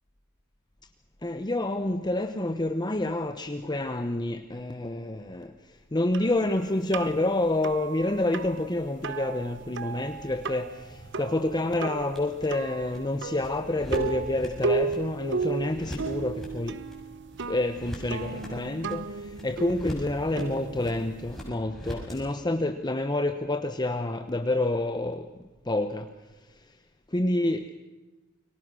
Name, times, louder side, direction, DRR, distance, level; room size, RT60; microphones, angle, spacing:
voice 1, 1.2-16.8 17.5-25.3 25.6-26.1 27.1-27.7, left 2 dB, 20° left, 8 dB, 1.0 m, -28 dB
sound 1, 6.1-21.5, right 4 dB, 60° right, 0.9 m, -35 dB
sound 2, 10.5-22.2, equal, ahead, 7.0 m, -43 dB
29.5 x 23.5 x 6.3 m, 1.2 s
head